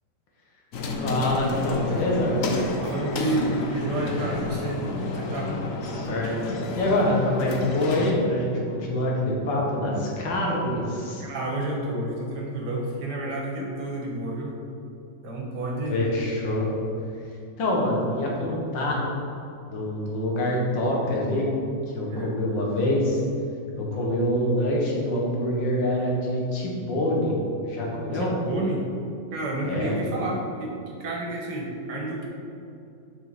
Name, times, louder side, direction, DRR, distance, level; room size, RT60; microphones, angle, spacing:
sound 1, 0.7-8.1, left 3 dB, 55° left, 1.0 m, -30 dB
voice 1, 0.8-2.4 5.8-11.2 15.9-16.7 17.6-19.0 19.7-21.5 21.9-23.2 23.8-28.4 29.6-29.9, left 1 dB, 90° left, -2 dB, 2.1 m, -25 dB
voice 2, 2.8-5.5 11.2-14.5 15.2-16.0 22.1-22.3 28.1-28.9 29.3-30.7 31.0-32.3, right 2 dB, 65° right, -1 dB, 1.8 m, -30 dB
7.5 x 5.8 x 4.2 m, 2.6 s
omnidirectional pair, 1.9 m